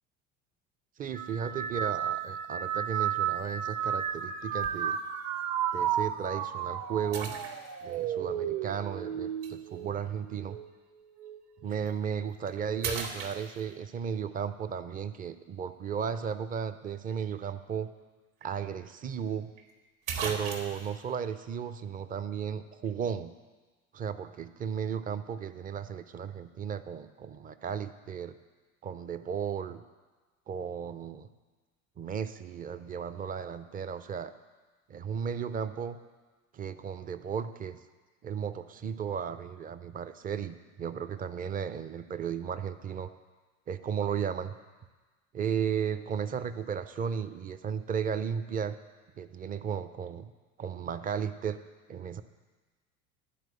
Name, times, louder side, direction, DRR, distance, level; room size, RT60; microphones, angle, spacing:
voice 1, 1.0-5.0 5.7-7.4 7.8-10.6 11.6-17.9 18.4-19.5 20.2-23.3 23.9-28.4 28.8-29.8 30.5-31.3 32.0-34.3 34.9-36.0 36.5-37.8 38.2-43.1 43.7-44.5 45.3-48.8 49.2-50.3 50.6-51.6 51.9-52.2, right 7 dB, 20° right, 11 dB, 0.4 m, -35 dB
sound 1, 1.1-10.7 11.2-11.8 12.7-13.1, right 9 dB, 40° right, 0.8 m, -33 dB
sound 2, 4.6-4.9 5.6-5.7 7.1-8.0 9.4-9.5 11.7-11.9 12.3-12.5 12.8-13.9 18.0-18.1 18.4-18.5 19.6-19.7 20.1-20.9, right 5 dB, 60° right, 1.6 m, -37 dB
11.5 x 4.6 x 7.7 m, 1.3 s
figure-of-eight pair, 70°, 43 cm